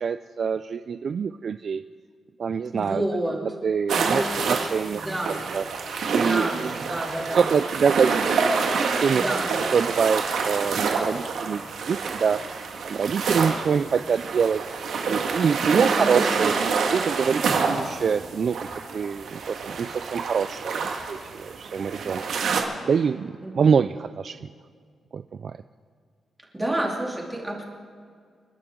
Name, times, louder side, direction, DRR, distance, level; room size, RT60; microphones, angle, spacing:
voice 1, 0.0-1.8 2.4-3.0 3.6-5.0 5.3-5.6 6.1-6.8 7.4-8.4 8.7-9.4 9.7-11.6 11.9-12.4 12.8-16.5 16.9-18.6 18.9-22.2 22.8-24.5 25.1-25.6, right 6 dB, 45° right, 11 dB, 0.3 m, -25 dB
voice 2, 2.7-3.4 3.9-4.2 4.9-5.4 6.1-7.4 9.1-9.5 15.7-16.1 23.4-23.6 26.5-27.6, right 1 dB, 10° right, -2 dB, 2.6 m, -29 dB
sound 1, 3.9-22.6, right 5 dB, 85° right, 1.9 m, -27 dB
29.0 x 11.5 x 3.7 m, 2.1 s
wide cardioid pair, 165°, 0 cm